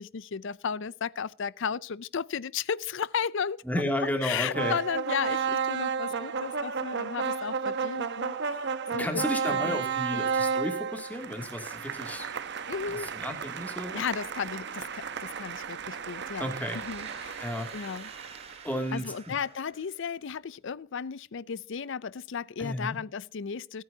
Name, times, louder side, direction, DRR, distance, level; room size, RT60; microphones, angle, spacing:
voice 1, 0.0-3.6 4.2-9.8 10.1-10.2 12.7-13.1 13.9-17.4 17.7-18.1 18.9-23.8, left 6 dB, 70° left, 0.5 m, -34 dB
voice 2, 3.6-4.8 9.0-12.3 13.1-14.0 16.4-16.8 17.4-17.7 18.6-19.1 22.6-23.0, left 1 dB, 10° left, 2.6 m, -32 dB
sound 1, 4.5-18.7, right 6 dB, 60° right, 0.9 m, -33 dB
sound 2, 16.5-20.5, right 5 dB, 30° right, 1.9 m, -50 dB
25.5 x 9.3 x 2.8 m
head